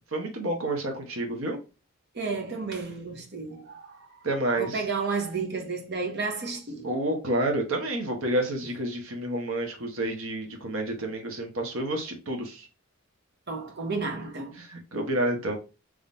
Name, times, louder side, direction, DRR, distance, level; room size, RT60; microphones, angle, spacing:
voice 1, 0.1-1.6 4.2-4.8 6.8-12.7 14.6-15.6, right 1 dB, 75° right, 1.0 m, -29 dB
voice 2, 2.1-4.0 4.6-6.9 13.5-14.5, right 4 dB, 50° right, 1.0 m, -32 dB
3.6 x 3.2 x 2.6 m
head